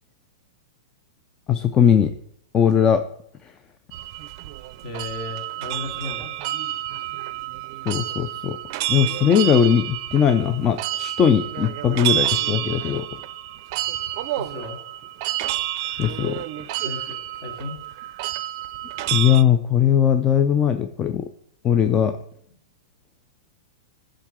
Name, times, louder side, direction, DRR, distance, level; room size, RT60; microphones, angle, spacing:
voice 1, 1.5-2.1 2.5-3.0 3.4-3.5 7.9-8.6 8.9-13.1 16.0-16.4 19.1-21.3 21.6-22.2, left 8 dB, 25° left, 9 dB, 0.4 m, -19 dB
sound 1, 3.9-19.4, right 14 dB, 50° right, 0.4 m, -29 dB
voice 2, 4.8-6.4 14.4-15.1 16.8-17.8, left 3 dB, 45° left, 2 dB, 2.6 m, -35 dB
9.9 x 3.8 x 6.0 m, 0.70 s
hypercardioid pair, 130°, 3 cm